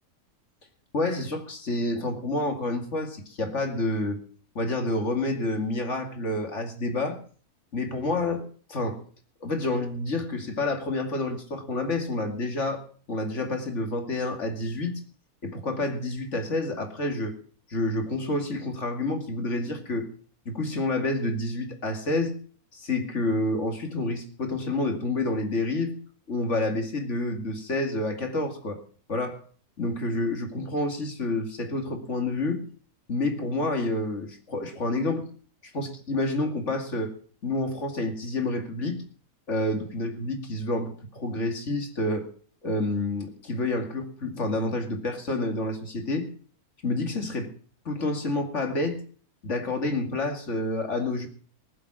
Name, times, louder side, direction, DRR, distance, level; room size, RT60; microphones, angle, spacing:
voice 1, 0.9-4.2 4.5-7.2 7.7-8.4 8.7-9.0 9.4-12.8 13.1-15.0 15.4-17.3 17.7-20.1 20.5-22.3 22.7-25.9 26.3-28.8 29.1-29.4 29.8-32.6 33.1-35.3 35.7-37.1 37.4-39.0 39.5-42.3 42.6-46.3 46.8-47.5 47.9-49.0 49.4-51.3, left 2 dB, 50° left, 5 dB, 2.6 m, -28 dB
19.5 x 7.7 x 6.2 m, 0.43 s
omnidirectional pair, 1.6 m